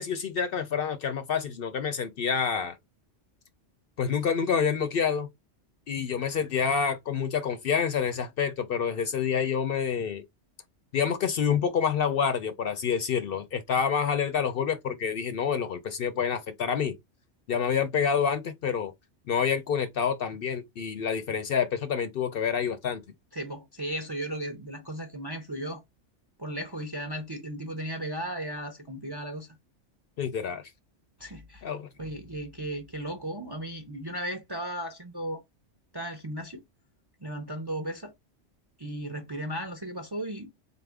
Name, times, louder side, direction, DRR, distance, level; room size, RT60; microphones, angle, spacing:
voice 1, 0.0-2.8 4.0-5.3 5.9-10.2 10.9-16.9 17.5-18.9 19.3-23.0 30.2-30.6 31.6-31.9, left 7 dB, 60° left, 0.7 m, -28 dB
voice 2, 23.3-25.8 26.4-29.6 31.2-31.7 32.0-35.4 35.9-36.6 37.2-38.1 38.8-40.5, right 1 dB, 30° right, 0.5 m, -35 dB
4.1 x 2.5 x 3.4 m
omnidirectional pair, 1.2 m